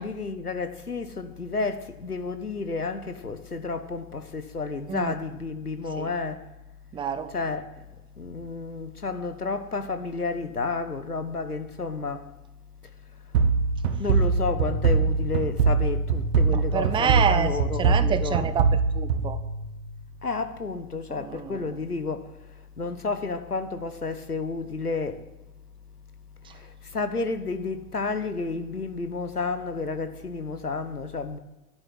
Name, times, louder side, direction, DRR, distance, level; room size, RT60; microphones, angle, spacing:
voice 1, 0.0-6.4 7.3-7.6 8.2-12.3 14.0-18.5 20.2-22.4 22.8-25.2 26.5-31.4, left 4 dB, 85° left, 1.4 m, -31 dB
voice 2, 6.9-7.3 16.5-19.4 21.1-21.8 26.4-26.5, right 7 dB, 10° right, 0.6 m, -28 dB
sound 1, 13.3-20.0, right 4 dB, 45° right, 1.3 m, -23 dB
11.0 x 11.0 x 8.1 m
figure-of-eight pair, 95°, 44 cm